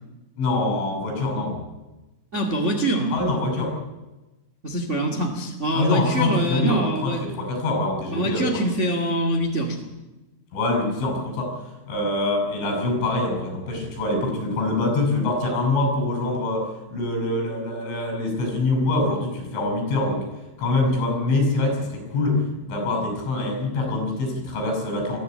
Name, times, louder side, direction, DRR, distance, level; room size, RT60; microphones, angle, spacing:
voice 1, 0.4-1.6 3.1-3.8 5.7-8.6 10.5-11.5 11.9-20.3 20.6-25.2, left 2 dB, 80° left, 3 dB, 7.9 m, -24 dB
voice 2, 2.3-3.2 4.6-7.2 8.1-9.8, right 1 dB, 90° right, 4 dB, 0.6 m, -24 dB
21.0 x 14.0 x 8.7 m, 1.1 s
omnidirectional pair, 5.5 m